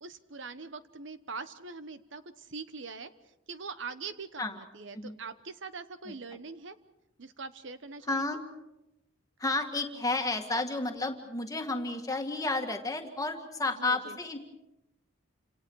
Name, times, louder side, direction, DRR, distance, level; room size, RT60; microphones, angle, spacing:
voice 1, 0.0-3.1 3.5-6.8 7.2-8.4 13.8-14.2, right 4 dB, 60° right, 12 dB, 1.0 m, -42 dB
voice 2, 8.1-8.4 9.4-14.4, left 2 dB, 15° left, 4 dB, 2.0 m, -31 dB
30.0 x 27.0 x 4.8 m, 0.92 s
head